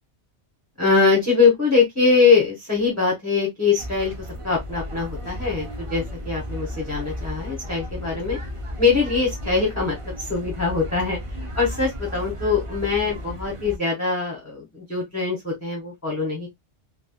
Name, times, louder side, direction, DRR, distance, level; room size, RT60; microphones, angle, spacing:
voice 1, 0.8-8.4 8.8-11.2 11.5-16.5, left 4 dB, 15° left, 1.0 m, -22 dB
sound 1, 3.8-13.8, equal, 35° right, 0.6 m, -34 dB
3.4 x 2.6 x 2.2 m
omnidirectional pair, 1.2 m